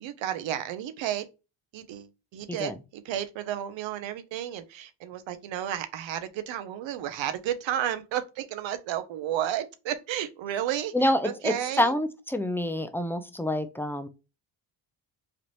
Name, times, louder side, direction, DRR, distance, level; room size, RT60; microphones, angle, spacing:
voice 1, 0.0-1.2 1.7-11.9, right 11 dB, 70° right, 0.7 m, -32 dB
voice 2, 10.9-14.1, left 1 dB, 5° left, 0.4 m, -27 dB
3.4 x 2.5 x 3.0 m
supercardioid pair, 70°, 46 cm